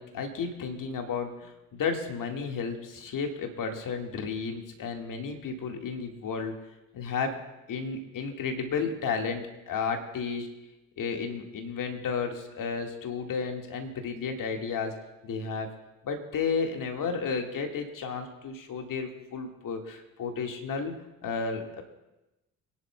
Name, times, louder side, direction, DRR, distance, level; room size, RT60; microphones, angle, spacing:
voice 1, 0.0-6.6 6.9-7.4 7.7-10.5 11.0-14.9 15.2-15.7 16.0-20.9 21.2-21.8, left 5 dB, 45° left, 4 dB, 1.9 m, -32 dB
28.5 x 10.5 x 2.3 m, 0.98 s
hypercardioid pair, 55°, 44 cm